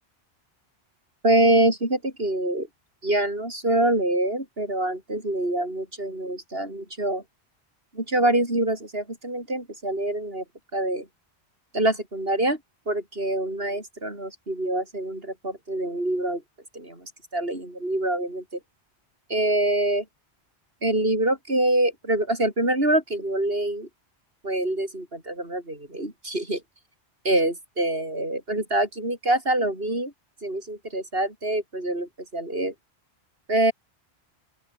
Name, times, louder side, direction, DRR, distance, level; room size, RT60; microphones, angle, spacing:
voice 1, 1.2-2.7 3.0-7.2 7.9-10.4 10.7-11.1 11.7-12.6 12.9-16.4 16.7-18.4 19.3-20.0 20.8-23.9 24.4-26.6 27.2-30.1 30.4-32.7 33.5-33.7, right 1 dB, 65° right, 6.8 m, -25 dB
open air
omnidirectional pair, 1.1 m